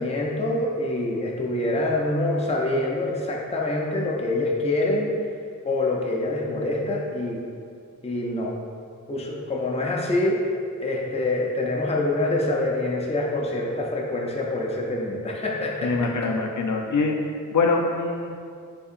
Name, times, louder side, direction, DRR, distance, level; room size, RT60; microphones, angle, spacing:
voice 1, 0.0-5.1 5.7-7.4 8.0-8.5 9.1-10.5 10.8-16.3, left 2 dB, 20° left, -2 dB, 0.5 m, -25 dB
voice 2, 15.8-17.2 17.5-18.3, left 3 dB, 75° left, 2 dB, 0.5 m, -23 dB
5.6 x 3.4 x 2.5 m, 2.2 s
wide cardioid pair, 90°, 31 cm